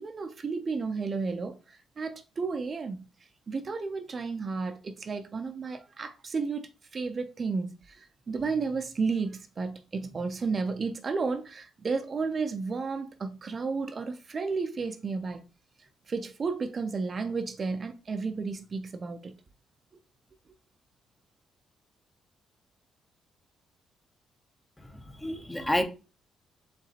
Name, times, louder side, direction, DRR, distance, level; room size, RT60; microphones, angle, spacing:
voice 1, 0.0-3.1 3.5-15.4 15.8-19.4, right 4 dB, 40° right, 0.5 m, -32 dB
voice 2, 24.9-25.8, left 1 dB, 10° left, 0.7 m, -29 dB
4.8 x 3.3 x 2.8 m
cardioid pair, 90°, 0 cm